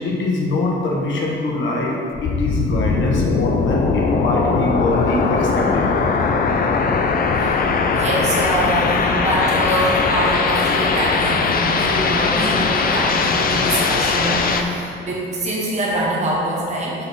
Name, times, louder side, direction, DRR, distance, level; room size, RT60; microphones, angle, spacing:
voice 1, 0.0-6.0 9.1-9.2 14.7-14.8, left 2 dB, 70° left, -2 dB, 1.3 m, -24 dB
sound 1, 2.2-14.6, left 4 dB, 45° left, 0.6 m, -19 dB
voice 2, 7.3-17.0, right 1 dB, 35° right, -4 dB, 1.2 m, -24 dB
5.7 x 4.1 x 5.6 m, 2.6 s
cardioid pair, 90°, 20 cm